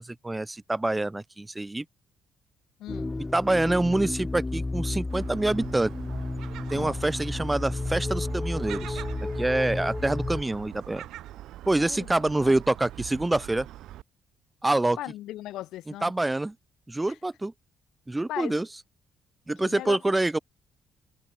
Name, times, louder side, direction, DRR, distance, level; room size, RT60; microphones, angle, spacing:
voice 1, 0.0-1.8 3.3-5.9 6.7-9.0 9.4-11.0 11.7-13.7 14.6-15.0 16.0-16.5 16.9-17.5 18.1-18.7 19.5-20.4, right 2 dB, 15° right, 1.3 m, -26 dB
voice 2, 2.8-3.1 6.7-7.0 11.7-12.6 15.0-16.1 17.1-17.2 18.3-18.5 19.6-20.0, left 14 dB, 85° left, 4.1 m, -38 dB
sound 1, 2.9-10.4, left 2 dB, 20° left, 0.5 m, -32 dB
Gull seagull, 5.1-14.0, right 14 dB, 85° right, 7.4 m, -43 dB
cardioid pair, 90°, 0 cm